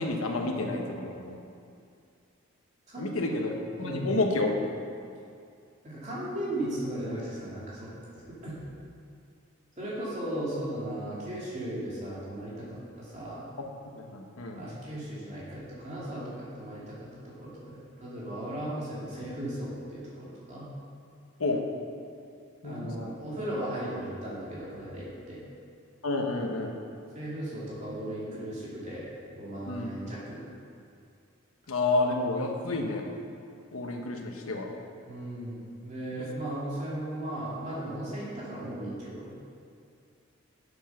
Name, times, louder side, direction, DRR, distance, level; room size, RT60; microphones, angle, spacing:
voice 1, 0.0-1.4 3.0-4.6 13.6-13.7 13.9-14.6 21.4-21.6 22.6-23.1 26.0-26.8 29.7-29.9 31.7-33.0 33.7-34.7, left 2 dB, 85° left, 2 dB, 1.2 m, -30 dB
voice 2, 2.9-3.5 3.8-4.2 5.8-8.6 9.8-13.4 14.5-20.7 22.6-25.4 27.1-29.0 29.4-30.4 35.1-39.3, right 1 dB, 35° right, -7 dB, 2.7 m, -36 dB
8.1 x 8.0 x 5.9 m, 2.4 s
head